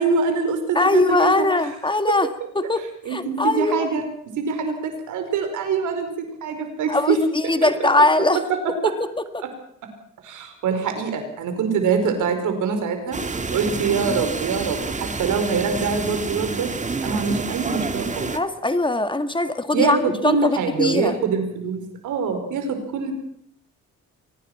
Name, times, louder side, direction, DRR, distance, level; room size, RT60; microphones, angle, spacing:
voice 1, 0.0-1.7 2.1-2.2 3.0-4.1 4.4-6.1 6.4-7.7 8.5-8.9 9.4-9.5 10.2-16.7 17.0-18.3 19.7-23.1, right 5 dB, 80° right, 6 dB, 4.9 m, -24 dB
voice 2, 0.8-2.3 2.6-2.8 3.1-3.9 6.9-7.2 7.5-8.4 8.8-8.9 9.3-9.4 18.2-20.0 20.2-21.2, left 2 dB, 15° left, 9 dB, 1.8 m, -20 dB
sound 1, 13.1-18.4, right 4 dB, 25° right, 1.7 m, -28 dB
24.0 x 19.0 x 6.0 m, 0.69 s
cardioid pair, 90°, 30 cm